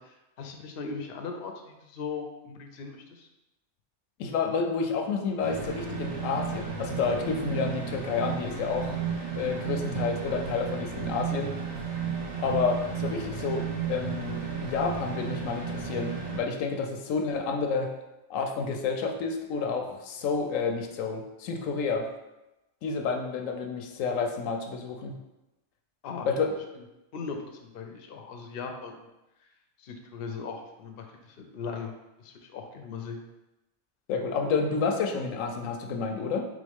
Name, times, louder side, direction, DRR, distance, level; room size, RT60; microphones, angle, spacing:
voice 1, 0.0-3.3 26.0-26.3 26.7-26.8 27.1-29.1 29.8-31.9 32.2-33.2, left 5 dB, 60° left, 3 dB, 0.7 m, -39 dB
voice 2, 4.2-9.0 9.4-11.6 12.4-17.9 18.3-22.1 22.8-25.2 26.2-26.5 34.1-36.4, left 5 dB, 90° left, 4 dB, 1.0 m, -30 dB
sound 1, 5.4-16.4, right 6 dB, 85° right, 1.5 m, -33 dB
3.7 x 3.6 x 3.5 m, 0.97 s
omnidirectional pair, 1.3 m